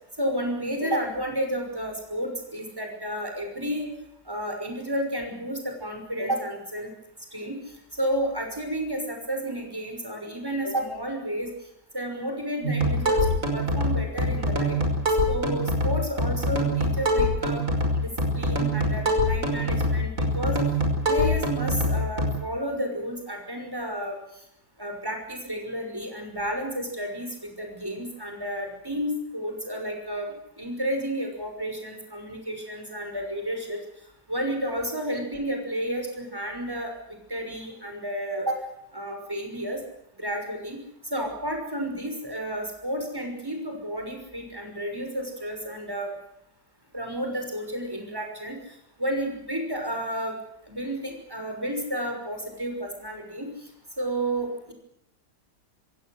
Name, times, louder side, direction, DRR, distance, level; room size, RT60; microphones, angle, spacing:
voice 1, 0.2-3.9 4.3-6.9 7.3-7.6 7.9-11.5 11.9-13.3 13.5-14.8 15.3-17.6 17.9-20.7 21.0-24.2 24.8-33.8 34.3-36.9 37.3-38.7 38.9-39.8 40.2-40.8 41.1-46.1 46.9-48.6 49.0-50.4 50.7-53.5 54.0-54.7, equal, 10° right, 3 dB, 5.9 m, -31 dB
sound 1, 12.6-22.3, equal, 50° right, 6.0 m, -24 dB
27.5 x 16.0 x 8.0 m, 0.77 s
omnidirectional pair, 1.8 m